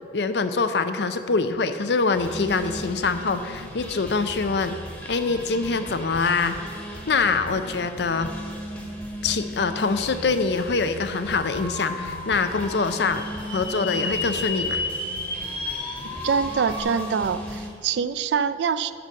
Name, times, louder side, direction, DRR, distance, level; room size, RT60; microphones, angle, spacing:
voice 1, 0.1-4.8 5.0-6.5 7.1-8.3 9.2-13.2 13.5-14.8, left 4 dB, 65° left, 10 dB, 0.5 m, -24 dB
sound 1, 2.1-17.7, equal, 5° left, 1.4 m, -37 dB
sound 2, 11.2-16.8, left 2 dB, 25° left, 1.3 m, -32 dB
voice 2, 16.2-18.9, right 6 dB, 70° right, 14 dB, 0.4 m, -24 dB
11.5 x 4.1 x 7.4 m, 2.4 s
head